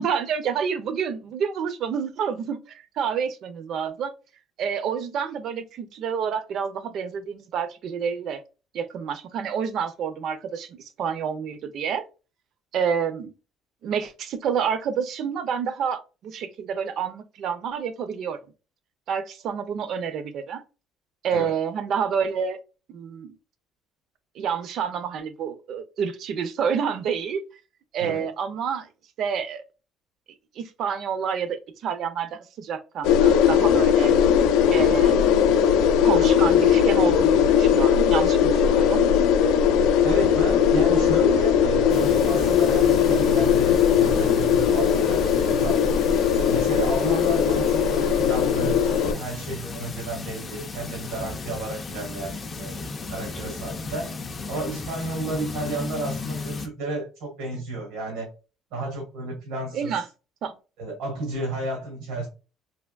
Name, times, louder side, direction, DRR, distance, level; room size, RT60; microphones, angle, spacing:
voice 1, 0.0-4.1 4.6-8.4 8.7-12.0 12.7-13.3 13.8-18.4 19.1-20.6 21.2-22.6 22.9-23.3 24.4-27.4 27.9-28.9 29.2-29.6 30.6-31.6 31.8-34.1 34.7-35.6 36.0-39.0 59.7-60.0 60.4-60.5, right 7 dB, 45° right, 0.4 m, -28 dB
sound 1, 33.0-49.1, left 8 dB, 80° left, 0.4 m, -19 dB
voice 2, 40.0-45.8 46.3-54.1 54.5-58.3 58.7-60.0 60.8-62.3, right 2 dB, 90° right, 1.3 m, -32 dB
sound 2, 41.9-56.7, left 3 dB, 20° left, 0.4 m, -35 dB
3.3 x 2.8 x 2.3 m
cardioid pair, 180°, 0 cm